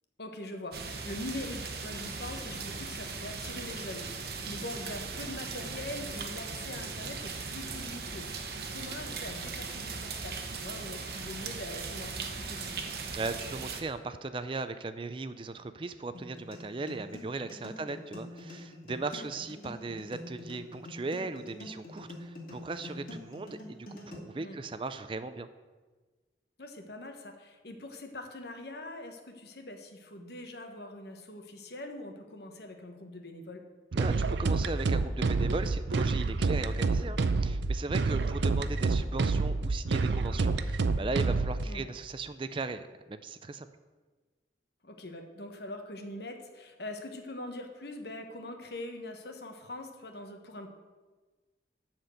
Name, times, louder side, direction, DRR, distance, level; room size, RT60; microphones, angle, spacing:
voice 1, 0.2-12.8 17.8-18.0 19.3-19.4 24.3-24.6 26.6-33.6 37.9-38.0 41.6-41.8 44.8-50.7, left 1 dB, 65° left, 4 dB, 1.3 m, -43 dB
sound 1, 0.7-13.8, right 4 dB, 60° right, 1.1 m, -38 dB
voice 2, 13.1-25.5 34.0-42.8 43.1-43.7, right 3 dB, 30° right, 11 dB, 0.4 m, -37 dB
sound 2, 16.1-24.1, left 2 dB, 50° left, 2.5 m, -46 dB
sound 3, 33.9-41.6, right 3 dB, 80° right, 0.5 m, -28 dB
12.5 x 4.5 x 7.9 m, 1.3 s
head